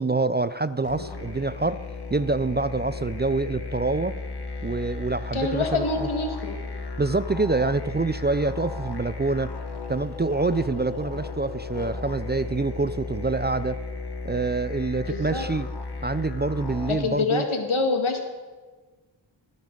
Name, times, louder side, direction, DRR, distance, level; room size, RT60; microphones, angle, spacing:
voice 1, 0.0-1.8 2.1-4.2 4.6-6.1 7.0-9.5 9.9-13.8 14.2-15.7 16.0-17.5, right 3 dB, 25° right, 14 dB, 0.4 m, -26 dB
sound 1, 0.8-16.9, left 3 dB, 55° left, 1.6 m, -34 dB
voice 2, 5.3-6.6 15.1-15.5 16.9-18.2, left 3 dB, 80° left, 3 dB, 1.9 m, -26 dB
20.0 x 11.0 x 3.9 m, 1.4 s
cardioid pair, 45°, 48 cm